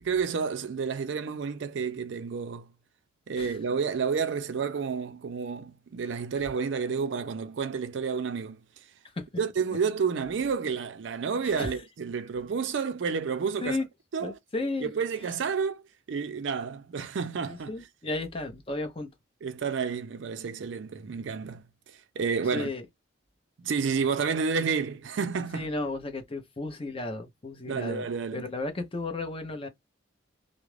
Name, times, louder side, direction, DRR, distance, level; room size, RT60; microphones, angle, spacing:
voice 1, 0.0-2.7 3.3-8.6 9.4-13.8 14.1-14.4 14.8-17.7 19.4-21.6 22.2-22.7 23.6-25.7 27.7-28.4, right 5 dB, 60° right, 0.4 m, -30 dB
voice 2, 14.2-14.9 17.5-19.1 22.5-22.8 25.5-29.7, left 2 dB, 30° left, 0.7 m, -34 dB
2.4 x 2.0 x 3.1 m
head